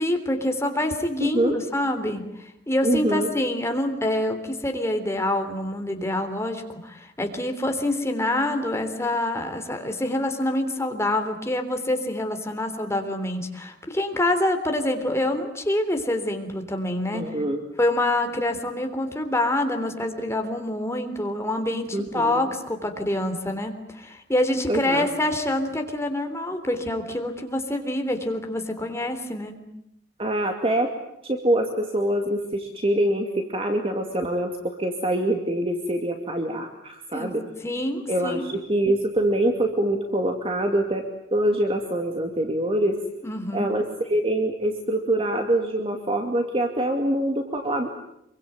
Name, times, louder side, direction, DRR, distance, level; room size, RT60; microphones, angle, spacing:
voice 1, 0.0-2.3 2.7-17.3 17.8-29.6 37.1-37.3 37.6-38.5 43.2-43.7, left 1 dB, 15° left, 5 dB, 3.5 m, -26 dB
voice 2, 1.2-1.6 2.8-3.3 17.1-17.6 21.9-22.5 24.7-25.1 30.2-30.9 31.2-37.4 38.1-41.0 41.3-43.0 43.5-47.9, right 1 dB, 30° right, 4 dB, 2.5 m, -24 dB
26.5 x 24.0 x 9.2 m, 0.78 s
head